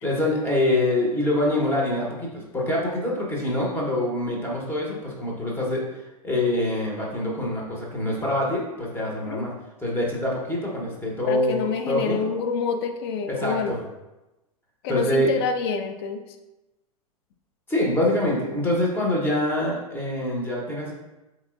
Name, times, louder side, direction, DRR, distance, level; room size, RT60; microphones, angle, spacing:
voice 1, 0.0-5.8 6.2-9.5 9.8-12.3 13.3-13.8 14.9-15.3 17.7-20.9, left 1 dB, 10° left, -3 dB, 0.9 m, -25 dB
voice 2, 11.2-13.8 14.8-16.2, left 5 dB, 45° left, 7 dB, 0.4 m, -27 dB
4.1 x 2.9 x 2.4 m, 1.0 s
figure-of-eight pair, 100°, 19 cm